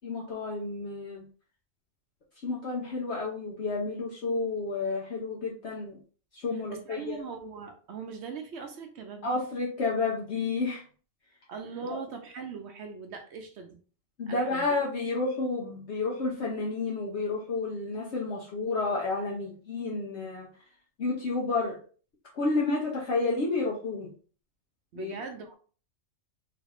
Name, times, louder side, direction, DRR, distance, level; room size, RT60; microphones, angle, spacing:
voice 1, 0.0-1.2 2.4-6.0 6.3-7.2 9.2-10.8 11.8-12.0 14.2-20.5 21.0-21.8 22.3-24.1 24.9-25.1, left 3 dB, 60° left, -3 dB, 1.0 m, -30 dB
voice 2, 6.7-9.4 11.5-13.8 14.3-14.7 24.9-25.5, right 5 dB, 65° right, 6 dB, 0.8 m, -40 dB
3.4 x 3.2 x 2.5 m, 0.40 s
omnidirectional pair, 1.4 m